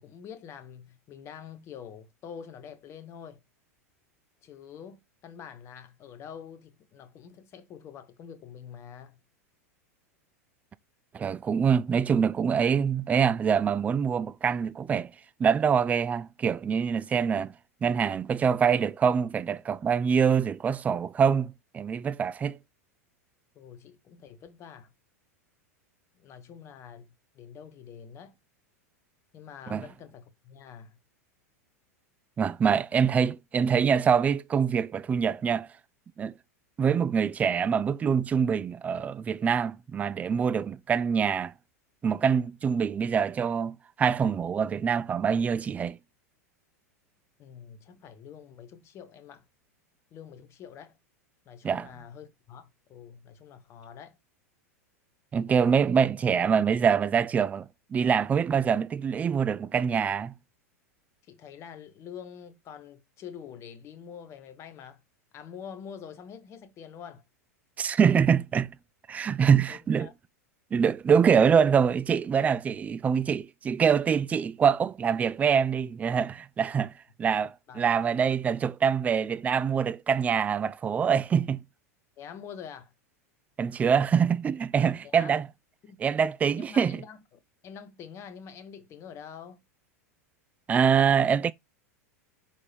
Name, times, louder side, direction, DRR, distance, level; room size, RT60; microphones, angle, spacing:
voice 1, 0.0-3.4 4.4-9.2 23.5-24.9 26.1-28.3 29.3-31.0 47.4-49.5 50.1-51.0 51.4-54.2 61.2-65.0 65.3-67.2 69.7-70.1 77.3-77.4 77.7-78.2 82.2-82.9 84.2-84.3 85.0-85.4 85.8-86.0 86.5-89.6, left 7 dB, 35° left, 1.1 m, -46 dB
voice 2, 11.1-15.1 15.4-17.5 17.8-22.6 29.7-29.8 32.4-35.7 36.2-36.3 36.8-41.5 42.0-46.0 51.6-51.9 55.3-60.3 67.8-68.7 69.1-70.1 70.7-76.9 77.2-81.6 83.6-85.5 86.0-87.0 90.7-91.5, right 7 dB, 15° right, 0.4 m, -25 dB
5.3 x 5.0 x 4.3 m
figure-of-eight pair, 90°, 8 cm